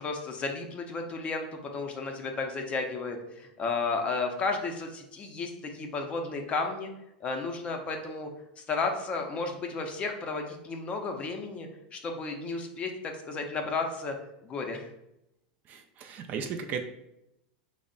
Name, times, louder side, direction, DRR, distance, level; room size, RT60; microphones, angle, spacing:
voice 1, 0.0-6.9 7.2-8.3 8.7-14.2 14.4-14.9, left 3 dB, 25° left, 3 dB, 0.5 m, -33 dB
voice 2, 15.7-16.8, right 6 dB, 35° right, 5 dB, 0.3 m, -35 dB
3.4 x 2.0 x 3.8 m, 0.85 s
supercardioid pair, 130°, 5 cm